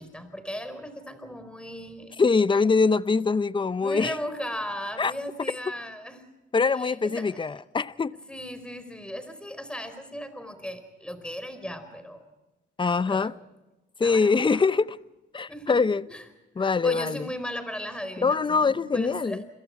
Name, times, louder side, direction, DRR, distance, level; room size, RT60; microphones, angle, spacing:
voice 1, 0.0-2.1 3.6-6.3 6.7-7.4 8.3-12.2 13.1-13.3 14.0-14.7 15.5-15.8 16.1-16.2 16.6-19.4, equal, 5° left, 4.7 m, -37 dB
voice 2, 2.2-4.2 5.0-5.1 6.5-8.2 12.8-13.3 14.0-15.0 15.3-16.1 16.6-17.3 18.2-19.4, left 4 dB, 25° left, 0.7 m, -23 dB
30.0 x 23.0 x 4.8 m
cardioid pair, 90°, 20 cm